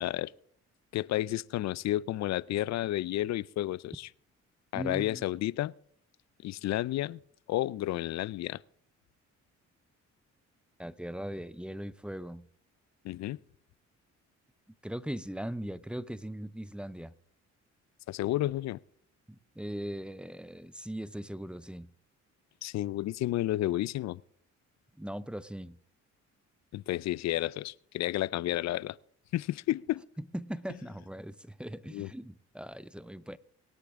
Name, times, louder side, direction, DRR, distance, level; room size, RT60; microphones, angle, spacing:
voice 1, 0.0-0.3 0.9-4.1 4.7-5.7 6.4-7.2 7.5-8.6 13.0-13.4 18.1-18.8 22.6-24.2 26.7-29.0 29.3-30.0 31.9-32.1, left 15 dB, 65° left, 0.4 m, -31 dB
voice 2, 4.7-5.2 10.8-12.5 14.8-17.1 19.3-21.9 25.0-25.8 30.2-33.4, equal, 5° right, 0.5 m, -39 dB
24.5 x 8.4 x 3.6 m
cardioid pair, 90°, 30 cm